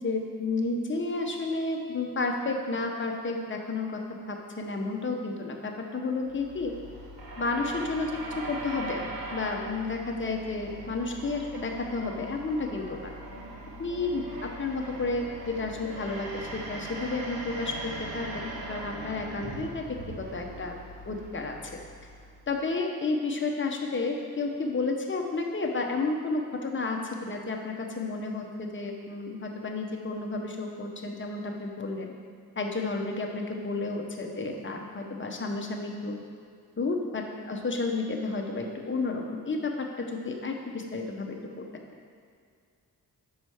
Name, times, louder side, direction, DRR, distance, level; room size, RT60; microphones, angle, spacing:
voice 1, 0.0-4.0 4.3-6.7 7.4-8.1 8.5-9.0 9.3-13.1 13.8-19.8 20.2-20.8 21.0-21.6 22.5-32.1 32.6-36.2 36.8-41.7, left 3 dB, 35° left, 2 dB, 0.8 m, -31 dB
sound 1, 6.2-22.5, right 2 dB, 90° right, 1.0 m, -40 dB
5.5 x 5.0 x 6.2 m, 2.3 s
wide cardioid pair, 120°, 36 cm